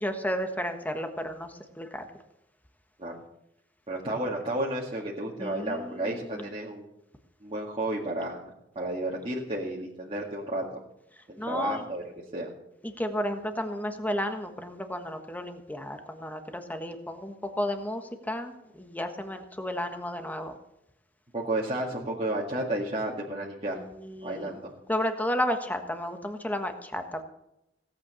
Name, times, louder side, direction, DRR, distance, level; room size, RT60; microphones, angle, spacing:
voice 1, 0.0-2.1 5.4-6.5 11.4-11.8 12.8-20.5 23.7-24.5 24.9-27.2, equal, 10° left, 6 dB, 1.4 m, -33 dB
voice 2, 3.9-6.9 7.4-8.4 8.8-10.7 11.3-12.5 21.3-23.8 24.2-24.7, right 1 dB, 30° right, -5 dB, 2.0 m, -32 dB
17.5 x 8.6 x 6.9 m, 0.85 s
head